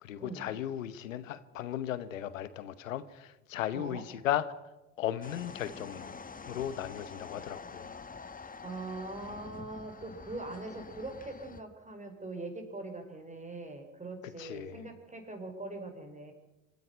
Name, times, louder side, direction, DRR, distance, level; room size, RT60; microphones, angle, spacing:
voice 1, 0.0-4.5 5.0-6.2 6.5-8.0 14.4-14.8, left 11 dB, 90° left, 14 dB, 1.0 m, -36 dB
voice 2, 3.7-4.0 7.3-7.4 8.6-16.3, right 2 dB, 20° right, 4 dB, 5.9 m, -42 dB
sound 1, 5.2-11.6, left 4 dB, 20° left, 1.4 m, -47 dB
25.5 x 11.0 x 9.8 m, 1.0 s
hypercardioid pair, 60°, 38 cm